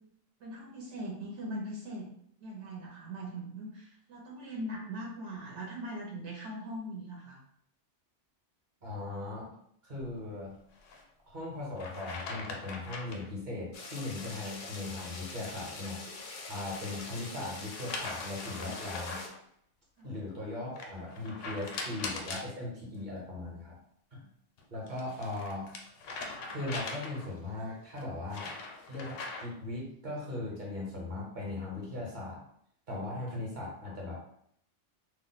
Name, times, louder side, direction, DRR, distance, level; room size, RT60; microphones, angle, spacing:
voice 1, 0.4-2.1 2.4-7.4 20.0-20.2, right 1 dB, 75° right, -3 dB, 1.0 m, -40 dB
voice 2, 8.8-9.5 9.8-10.6 11.3-16.0 16.5-19.2 20.0-23.7 24.1-24.3 24.7-25.7 26.5-28.5 28.9-32.4 32.9-34.2, left 2 dB, 45° right, -3 dB, 1.0 m, -39 dB
sound 1, 10.7-11.0 11.8-13.3 16.1-17.0 17.7-19.4 20.8-22.5 24.6-27.4 28.0-29.6, left 3 dB, 90° left, 0.9 m, -41 dB
sound 2, 13.7-19.3, left 3 dB, 60° left, 0.5 m, -44 dB
2.5 x 2.1 x 3.9 m, 0.68 s
omnidirectional pair, 1.2 m